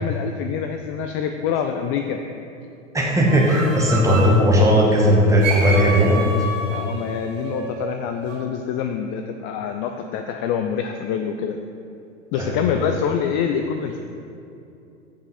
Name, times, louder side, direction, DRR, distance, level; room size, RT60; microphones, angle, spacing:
voice 1, 0.0-2.2 6.7-11.6 12.3-14.0, left 7 dB, 35° left, 6 dB, 0.4 m, -26 dB
voice 2, 2.9-6.2 12.4-12.8, equal, 10° right, -3 dB, 1.4 m, -17 dB
sound 1, 3.3-4.4 5.4-8.4, right 3 dB, 90° right, 1.2 m, -29 dB
8.0 x 5.5 x 4.1 m, 2.7 s
hypercardioid pair, 95°, 37 cm